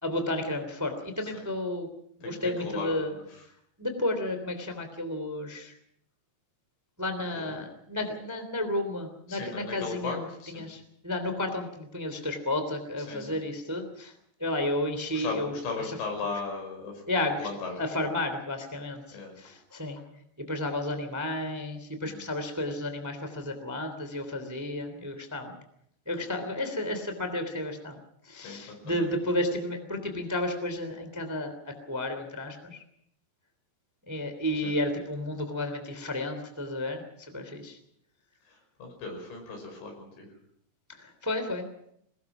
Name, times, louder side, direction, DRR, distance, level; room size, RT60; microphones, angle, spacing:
voice 1, 0.0-1.9 2.2-3.1 3.8-5.7 7.0-14.1 14.4-15.6 15.9-16.0 17.1-17.5 17.8-20.0 20.5-25.5 26.1-28.0 28.3-32.8 34.1-37.0 37.3-37.8 41.0-41.7, left 1 dB, 5° right, 7 dB, 1.9 m, -32 dB
voice 2, 2.2-3.4 7.3-7.5 9.3-10.6 13.1-13.4 15.1-17.0 17.4-17.8 19.1-19.3 22.0-22.3 28.4-28.6 28.9-29.1 34.6-34.7 38.8-40.3, left 4 dB, 85° left, 3 dB, 7.9 m, -37 dB
22.5 x 20.0 x 6.1 m, 0.73 s
omnidirectional pair, 5.0 m